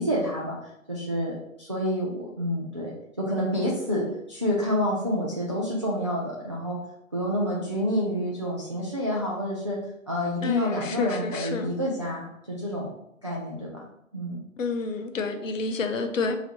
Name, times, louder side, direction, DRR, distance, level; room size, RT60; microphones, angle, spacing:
voice 1, 0.0-2.9 3.2-6.8 7.1-9.8 10.1-12.9 13.2-13.8 14.1-14.4, equal, 25° right, -6 dB, 0.3 m, -28 dB
voice 2, 10.4-11.7 14.6-16.4, left 4 dB, 65° left, 6 dB, 0.8 m, -29 dB
4.3 x 2.8 x 3.1 m, 0.78 s
figure-of-eight pair, 130°, 41 cm